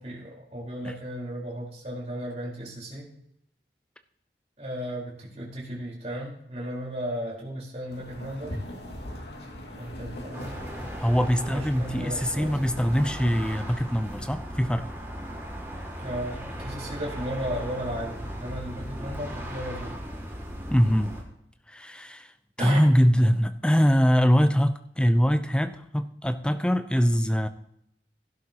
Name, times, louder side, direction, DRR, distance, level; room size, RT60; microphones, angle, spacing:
voice 1, 0.0-3.1 4.6-8.6 9.8-10.5 11.4-12.5 16.0-20.0 22.6-22.8, equal, 40° right, -4 dB, 4.7 m, -35 dB
sound 1, 7.9-14.3, left 1 dB, 80° left, 2.6 m, -41 dB
sound 2, 10.3-21.2, equal, 15° right, 2.6 m, -37 dB
voice 2, 11.0-14.9 20.7-21.1 21.7-22.3 22.6-27.5, equal, 5° left, 8 dB, 0.7 m, -23 dB
16.0 x 12.0 x 3.0 m, 0.74 s
head